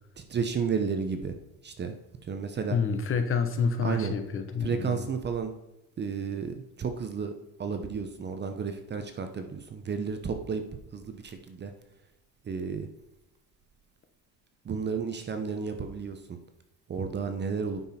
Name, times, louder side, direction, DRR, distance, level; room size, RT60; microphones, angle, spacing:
voice 1, 0.3-1.3 1.6-1.9 2.3-2.8 3.8-4.1 4.6-5.5 6.0-7.3 7.6-10.6 10.9-11.7 12.4-12.9 14.6-16.4 16.9-17.8, right 5 dB, 25° right, 7 dB, 0.9 m, -32 dB
voice 2, 2.7-5.0, left 5 dB, 35° left, 7 dB, 1.1 m, -28 dB
9.2 x 6.1 x 4.3 m, 0.92 s
cardioid pair, 135°, 38 cm